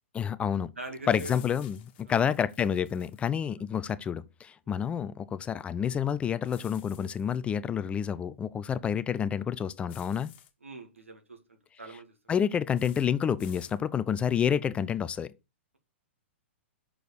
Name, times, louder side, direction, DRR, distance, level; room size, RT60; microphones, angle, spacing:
voice 1, 0.1-0.7 1.1-10.3 12.3-15.3, left 8 dB, 15° left, 0.4 m, -29 dB
voice 2, 0.8-1.4 2.1-2.2 4.7-4.8 10.6-12.1, right 2 dB, 90° right, 2.2 m, -43 dB
sound 1, 1.1-3.3 6.4-7.4 9.9-10.5 12.7-13.1 13.4-13.8, left 10 dB, 50° left, 1.6 m, -53 dB
6.3 x 5.0 x 6.7 m
figure-of-eight pair, 115°, 7 cm